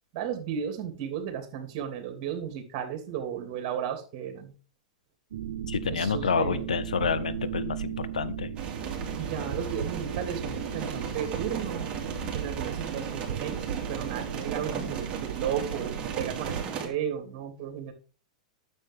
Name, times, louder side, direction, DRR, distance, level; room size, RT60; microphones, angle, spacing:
voice 1, 0.1-4.5 5.9-6.7 9.2-11.9 12.3-17.9, right 9 dB, 45° right, 6 dB, 2.8 m, -34 dB
sound 1, 5.3-16.6, right 9 dB, 70° right, 1.0 m, -36 dB
voice 2, 5.7-8.5, left 6 dB, 85° left, 13 dB, 0.9 m, -29 dB
sound 2, 8.6-16.9, right 5 dB, 30° right, 2.8 m, -36 dB
9.9 x 7.4 x 3.5 m, 0.36 s
hypercardioid pair, 105°, 4 cm